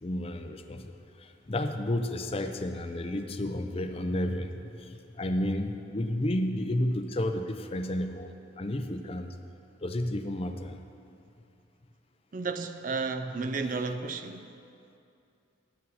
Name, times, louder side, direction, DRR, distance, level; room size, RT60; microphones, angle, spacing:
voice 1, 0.0-9.3 9.8-10.8, left 1 dB, 30° left, 0.5 m, -32 dB
voice 2, 12.3-14.5, right 4 dB, 45° right, 0.4 m, -32 dB
9.3 x 8.5 x 6.3 m
head